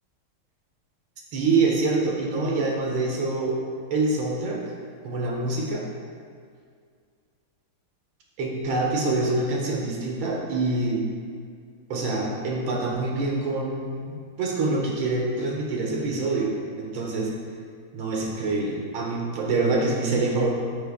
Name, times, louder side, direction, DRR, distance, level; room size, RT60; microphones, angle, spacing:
voice 1, 1.3-3.6 3.9-4.6 5.0-5.8 8.4-11.0 11.9-17.3 17.9-20.5, right 3 dB, 75° right, -2 dB, 1.7 m, -25 dB
9.0 x 3.6 x 3.5 m, 2.1 s
omnidirectional pair, 2.3 m